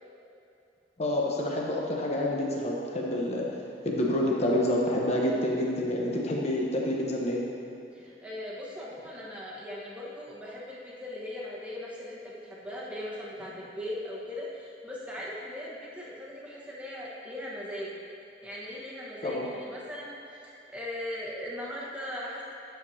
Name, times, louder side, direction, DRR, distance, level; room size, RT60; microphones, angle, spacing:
voice 1, 1.0-3.5 3.8-7.5 19.2-19.5, left 1 dB, 40° left, -2 dB, 0.9 m, -28 dB
voice 2, 7.9-17.9 18.4-20.2 20.4-22.4, left 1 dB, 5° right, -6 dB, 1.3 m, -39 dB
10.0 x 6.8 x 2.8 m, 2.8 s
head